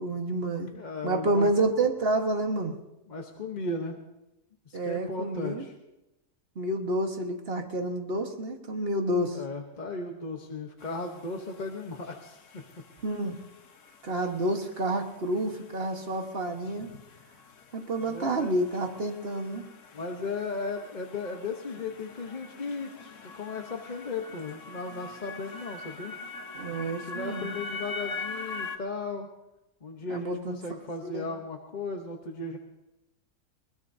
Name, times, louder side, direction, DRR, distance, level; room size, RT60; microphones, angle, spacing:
voice 1, 0.0-0.7 1.0-2.8 4.7-5.7 6.5-9.4 13.0-13.4 14.0-16.9 17.7-19.6 26.5-27.5 30.1-30.6 31.0-31.3, right 1 dB, 40° right, 4 dB, 1.5 m, -29 dB
voice 2, 0.7-1.5 3.1-4.0 4.7-5.7 9.3-12.6 18.1-18.6 19.9-22.9 23.2-26.2 26.8-29.3 29.8-32.6, left 3 dB, 35° left, 2 dB, 0.9 m, -36 dB
sound 1, 10.8-28.8, left 4 dB, 55° left, 1.2 m, -44 dB
21.5 x 20.0 x 2.7 m, 0.94 s
omnidirectional pair, 1.7 m